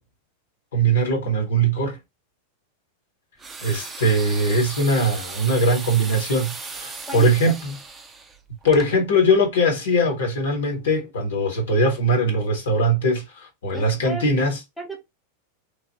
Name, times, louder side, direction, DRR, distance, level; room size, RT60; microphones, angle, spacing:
voice 1, 0.7-2.0 3.6-7.7 8.6-14.6, right 1 dB, 60° left, 1.2 m, -21 dB
sound 1, 3.4-8.9, right 4 dB, 15° right, 0.5 m, -37 dB
voice 2, 7.1-7.5 13.7-14.2 14.8-15.0, equal, ahead, 1.0 m, -34 dB
3.1 x 2.3 x 2.8 m
figure-of-eight pair, 90°, 0 cm